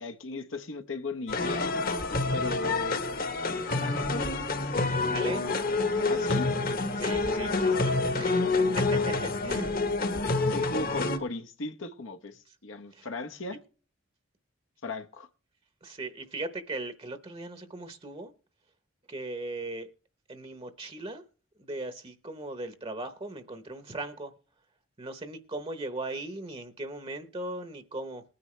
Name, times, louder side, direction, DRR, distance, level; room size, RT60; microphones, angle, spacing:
voice 1, 0.0-1.7 2.3-3.0 3.7-4.3 6.1-6.5 8.1-8.5 10.5-13.6 14.8-15.3, left 3 dB, 70° left, 0.9 m, -37 dB
sound 1, 1.3-11.2, left 3 dB, 45° left, 1.2 m, -27 dB
voice 2, 4.9-5.4 6.9-9.8 12.5-12.6 12.9-13.1 15.8-18.3 19.1-19.9 20.3-21.2 21.6-24.3 25.0-28.2, right 2 dB, 30° right, 0.9 m, -38 dB
20.0 x 9.7 x 3.2 m
head